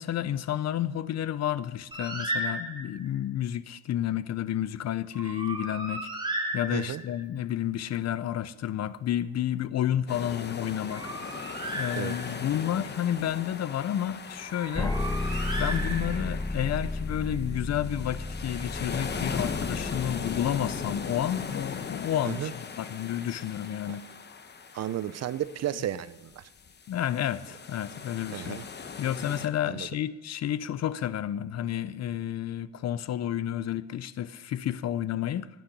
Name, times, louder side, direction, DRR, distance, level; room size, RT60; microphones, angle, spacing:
voice 1, 0.0-6.1 6.5-11.4 11.7-15.0 15.6-24.1 26.9-28.6 29.0-35.5, left 11 dB, 60° left, 0.6 m, -31 dB
Bird, 1.9-3.1 5.1-7.2 10.6-12.5 14.5-16.4, right 1 dB, 15° right, 3.4 m, -35 dB
voice 2, 6.7-7.0 12.0-12.2 22.2-22.5 23.9-24.0 24.7-26.4 28.3-28.6 29.6-29.9, right 11 dB, 60° right, 0.6 m, -33 dB
sound 1, 10.1-29.5, left 5 dB, 35° left, 1.1 m, -39 dB
sound 2, 14.7-21.7, left 2 dB, 10° left, 0.5 m, -33 dB
15.0 x 9.4 x 5.4 m
cardioid pair, 90°, 30 cm